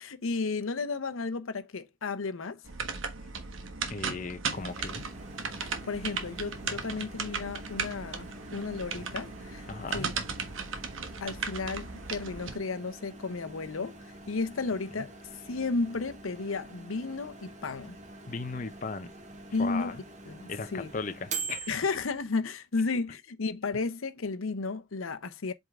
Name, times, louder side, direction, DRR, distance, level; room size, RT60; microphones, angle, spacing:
voice 1, 0.0-2.6 5.6-10.1 11.2-15.2 15.5-18.0 19.5-20.0 20.3-20.9 21.7-25.5, left 4 dB, 90° left, 0.7 m, -33 dB
sound 1, 2.7-12.6, right 5 dB, 75° right, 1.3 m, -36 dB
voice 2, 3.9-5.0 9.7-10.1 18.3-19.1 19.6-19.9 20.5-21.8, left 4 dB, 40° left, 0.6 m, -37 dB
Microwave oven, 4.5-22.3, right 3 dB, 35° right, 1.3 m, -45 dB
8.0 x 3.6 x 3.6 m
head